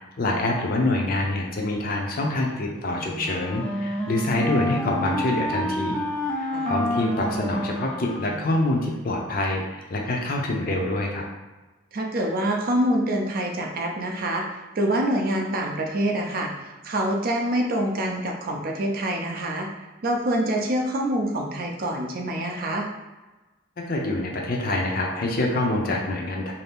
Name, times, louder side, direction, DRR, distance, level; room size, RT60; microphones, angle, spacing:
voice 1, 0.0-6.0 6.3-11.2 23.9-26.5, left 2 dB, 55° left, 0 dB, 0.6 m, -26 dB
Wind instrument woodwind instrument, 2.9-9.0, left 1 dB, 5° left, 0.4 m, -29 dB
voice 2, 11.9-19.7 20.0-22.9, right 1 dB, 55° right, 1 dB, 0.5 m, -26 dB
2.7 x 2.5 x 3.5 m, 1.2 s
head